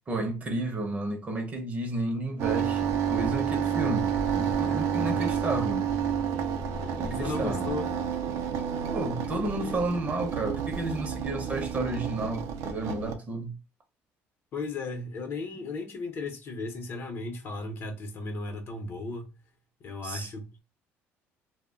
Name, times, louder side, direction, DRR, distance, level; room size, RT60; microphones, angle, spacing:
voice 1, 0.1-5.9 7.0-7.7 8.9-13.5 20.0-20.3, right 2 dB, 30° right, 0.6 m, -32 dB
sound 1, 2.4-13.1, right 8 dB, 80° right, 0.4 m, -30 dB
voice 2, 4.6-5.2 7.2-7.9 14.5-19.3 19.8-20.6, left 3 dB, 50° left, 0.7 m, -35 dB
2.2 x 2.1 x 3.5 m
cardioid pair, 120°, 5 cm